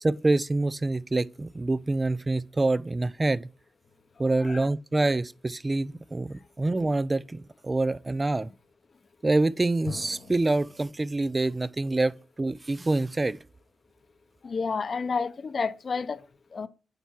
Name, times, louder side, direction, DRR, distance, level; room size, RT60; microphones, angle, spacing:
voice 1, 0.0-3.5 4.2-8.5 9.2-13.4, right 2 dB, 30° right, 0.4 m, -26 dB
sound 1, 3.8-5.2 9.9-11.7, left 6 dB, 85° left, 1.5 m, -47 dB
voice 2, 14.4-16.7, left 5 dB, 55° left, 0.7 m, -31 dB
9.0 x 3.4 x 4.4 m
supercardioid pair, 45°, 0 cm